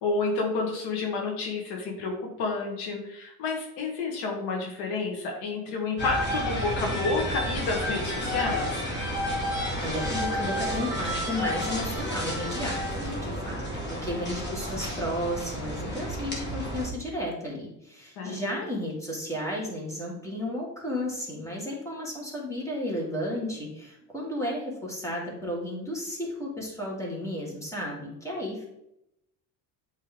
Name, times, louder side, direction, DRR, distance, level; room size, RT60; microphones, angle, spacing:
voice 1, 0.0-8.8 18.2-18.4, left 3 dB, 80° left, -1 dB, 1.4 m, -30 dB
sound 1, 6.0-16.9, equal, 25° left, 1.8 m, -31 dB
voice 2, 9.8-28.7, left 1 dB, 5° left, -3 dB, 1.9 m, -33 dB
8.3 x 3.2 x 3.5 m, 0.84 s
cardioid pair, 125°, 39 cm